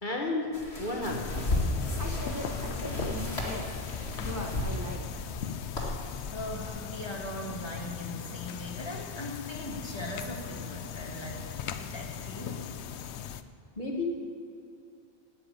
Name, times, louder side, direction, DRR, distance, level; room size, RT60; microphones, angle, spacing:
voice 1, 0.0-1.4 13.8-14.1, left 2 dB, 45° left, -1 dB, 1.9 m, -32 dB
sound 1, 0.5-6.7, left 1 dB, 70° left, 2.5 m, -34 dB
sound 2, 1.0-13.4, left 8 dB, 90° left, 0.9 m, -39 dB
voice 2, 2.0-3.7 4.1-5.2, left 1 dB, 15° right, 0 dB, 1.4 m, -39 dB
voice 3, 6.0-12.8, left 1 dB, 25° left, -1 dB, 2.0 m, -40 dB
10.0 x 9.0 x 8.8 m, 2.6 s
omnidirectional pair, 1.1 m